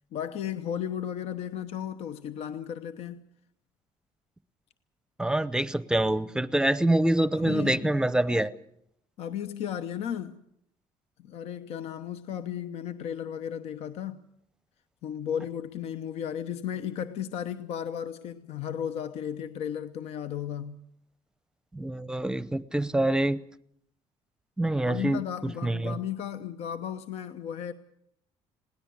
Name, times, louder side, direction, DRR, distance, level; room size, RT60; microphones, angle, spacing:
voice 1, 0.1-3.2 7.3-7.9 9.2-10.4 11.2-14.2 15.0-20.8 24.8-27.7, left 9 dB, 70° left, 1.0 m, -35 dB
voice 2, 5.2-8.5 21.7-23.4 24.6-26.0, right 1 dB, 5° right, 0.8 m, -26 dB
21.0 x 18.0 x 8.3 m
cardioid pair, 120°, 11 cm